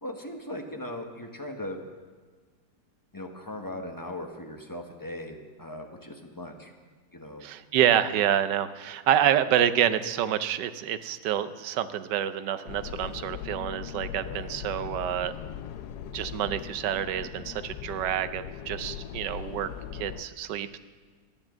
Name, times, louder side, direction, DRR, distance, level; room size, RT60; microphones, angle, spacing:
voice 1, 0.0-1.8 3.1-6.7 7.1-7.5 14.2-14.5, left 1 dB, 15° left, 2 dB, 0.8 m, -39 dB
voice 2, 7.4-15.3 16.1-20.8, right 10 dB, 75° right, 12 dB, 1.2 m, -27 dB
sound 1, 12.7-20.2, left 9 dB, 70° left, 1.1 m, -39 dB
12.5 x 9.8 x 7.4 m, 1.5 s
omnidirectional pair, 1.9 m